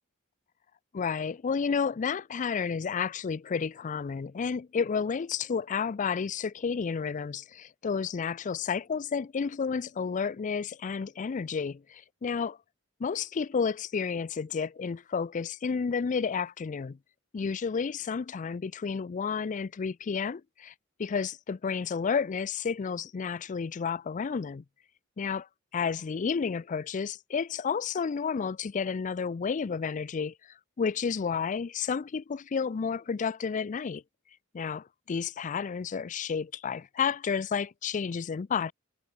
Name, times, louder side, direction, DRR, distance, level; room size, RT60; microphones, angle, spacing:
voice 1, 0.9-12.6 13.0-17.0 17.3-20.7 21.0-24.6 25.2-25.5 25.7-30.3 30.8-34.0 34.5-38.7, left 6 dB, 35° left, 0.4 m, -31 dB
head